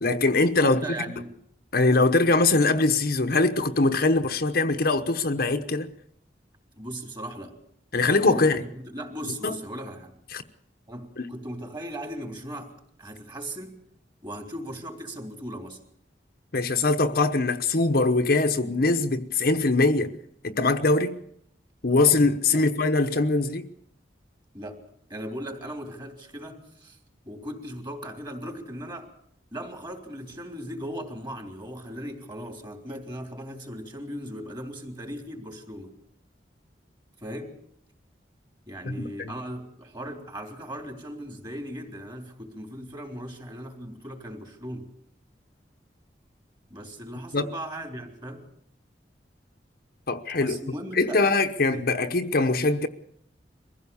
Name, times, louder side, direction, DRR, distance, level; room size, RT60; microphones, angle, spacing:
voice 1, 0.0-0.8 1.7-5.9 7.9-8.6 9.4-9.5 10.3-10.4 11.2-11.3 16.5-20.1 20.4-21.2 21.8-23.7 38.8-39.3 47.3-47.5 50.1-50.6 51.0-52.9, left 3 dB, 60° left, 1.1 m, -22 dB
voice 2, 0.6-1.3 6.8-7.5 8.2-10.1 10.9-12.7 13.0-13.8 14.2-15.8 22.5-22.6 24.5-24.8 25.1-27.0 27.2-29.1 29.5-36.0 37.2-37.6 38.7-44.9 46.7-48.4 50.4-51.2 51.7-51.9, equal, 25° right, 3.3 m, -38 dB
23.0 x 15.5 x 7.1 m
head